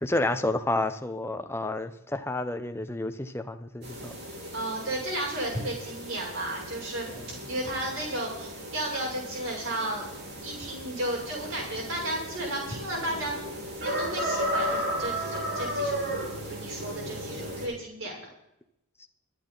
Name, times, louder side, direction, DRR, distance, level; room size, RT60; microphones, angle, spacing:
voice 1, 0.0-4.1 7.1-7.2, left 2 dB, 10° left, 9 dB, 0.8 m, -30 dB
sound 1, 3.8-17.7, equal, 50° right, 4.6 m, -35 dB
voice 2, 4.5-7.1 7.4-10.1 10.4-13.3 13.8-18.2, right 1 dB, 70° right, -2 dB, 6.7 m, -33 dB
25.0 x 8.9 x 4.0 m, 0.82 s
head